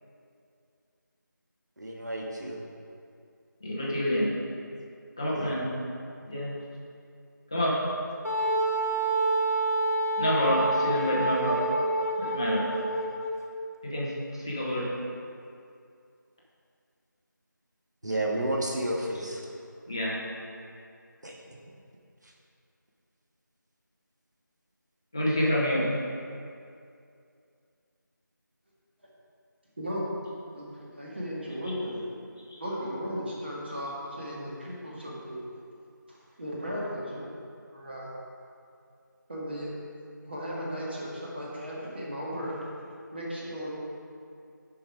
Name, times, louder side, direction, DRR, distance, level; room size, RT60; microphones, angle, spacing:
voice 1, 1.8-2.6 5.3-5.6 18.0-19.4 21.2-21.4 22.2-22.3, right 1 dB, 60° right, -1 dB, 1.6 m, -31 dB
voice 2, 3.6-4.3 5.2-5.7 6.3-6.5 7.5-7.8 10.2-11.6 12.2-12.6 13.8-14.1 14.4-14.8 19.9-20.2 25.1-25.8, left 1 dB, 15° left, -6 dB, 0.8 m, -27 dB
Wind instrument woodwind instrument, 8.2-13.4, right 2 dB, 45° left, 1.1 m, -27 dB
voice 3, 30.5-32.1 32.6-35.4 36.1-37.3 37.7-38.1 39.3-39.7 40.3-42.7 43.1-43.7, equal, 30° right, -5 dB, 1.8 m, -36 dB
8.6 x 6.0 x 4.8 m, 2.4 s
figure-of-eight pair, 170°, 11 cm